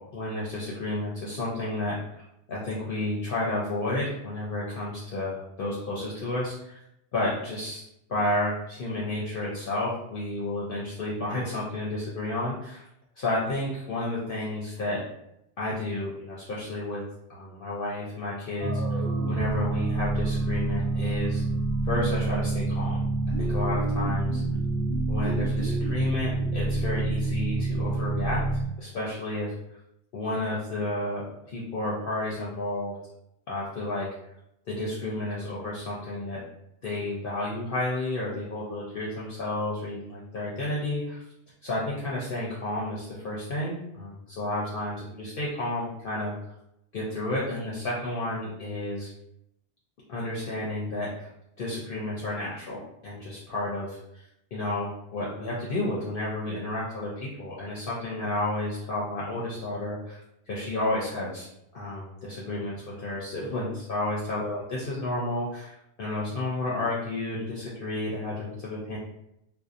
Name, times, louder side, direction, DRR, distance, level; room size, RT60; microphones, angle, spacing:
voice 1, 0.1-2.2 2.5-6.8 7.1-12.8 13.2-15.0 15.6-17.0 17.3-19.0 19.3-21.4 21.9-23.0 23.4-24.4 25.1-29.5 30.1-32.9 33.5-34.1 34.7-36.4 36.8-41.2 41.6-46.3 46.9-49.1 50.1-51.3 51.6-54.2 54.5-60.2 60.5-69.0, left 1 dB, 60° left, -6 dB, 0.7 m, -31 dB
sound 1, 18.6-28.6, right 2 dB, 75° right, 0.9 m, -27 dB
2.6 x 2.0 x 2.4 m, 0.80 s
omnidirectional pair, 1.1 m